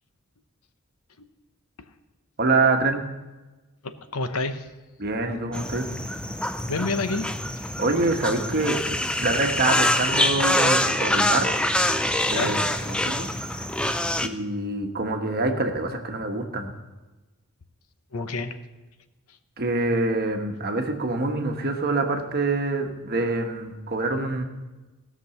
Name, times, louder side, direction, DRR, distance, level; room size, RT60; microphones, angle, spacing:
voice 1, 2.4-3.0 5.0-5.9 7.8-8.8 9.2-11.5 12.3-13.7 14.2-16.7 19.6-24.4, right 2 dB, 45° right, 4 dB, 1.2 m, -25 dB
voice 2, 3.8-4.6 6.7-7.2 7.6-7.7 12.3-12.5 18.1-18.5, left 3 dB, 80° left, 9 dB, 0.9 m, -29 dB
sound 1, 5.5-14.3, left 1 dB, 5° left, 0.4 m, -25 dB
17.0 x 6.1 x 6.9 m, 1.1 s
head